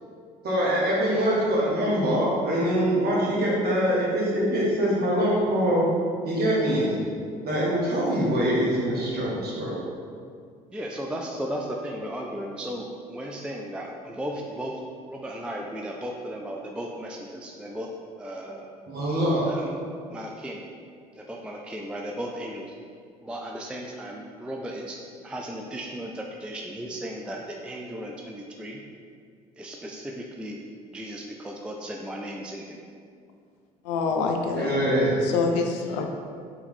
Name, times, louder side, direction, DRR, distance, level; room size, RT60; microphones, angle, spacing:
voice 1, 0.4-5.8 6.2-6.9 7.4-9.8 18.9-19.4 34.6-35.2, equal, 50° right, -5 dB, 1.3 m, -24 dB
voice 2, 10.7-14.8 15.1-17.9 18.2-18.7 19.4-19.8 20.1-20.6 21.1-22.8 23.2-25.0 25.2-28.8 29.6-30.6 30.9-32.8, equal, 5° right, 0 dB, 0.3 m, -35 dB
voice 3, 33.8-34.7 35.2-36.1, left 4 dB, 75° left, 3 dB, 0.4 m, -26 dB
3.4 x 3.0 x 3.6 m, 2.2 s
hypercardioid pair, 60°, 20 cm